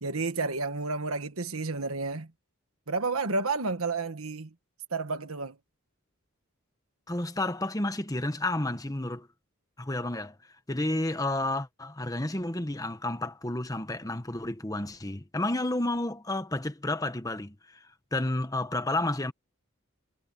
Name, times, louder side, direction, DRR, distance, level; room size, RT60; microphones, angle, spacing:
voice 1, 0.0-2.3 2.9-4.5 4.9-5.5, right 3 dB, 80° right, 1.5 m, -31 dB
voice 2, 7.1-9.3 9.8-10.3 10.7-19.3, left 2 dB, 15° left, 1.2 m, -31 dB
head